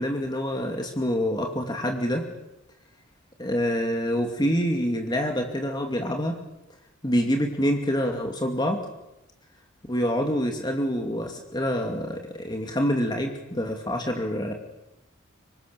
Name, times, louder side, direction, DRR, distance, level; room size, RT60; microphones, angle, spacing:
voice 1, 0.0-2.2 3.4-6.4 7.0-8.8 9.9-14.5, equal, 20° left, 3 dB, 2.6 m, -26 dB
26.5 x 24.0 x 7.0 m, 0.91 s
head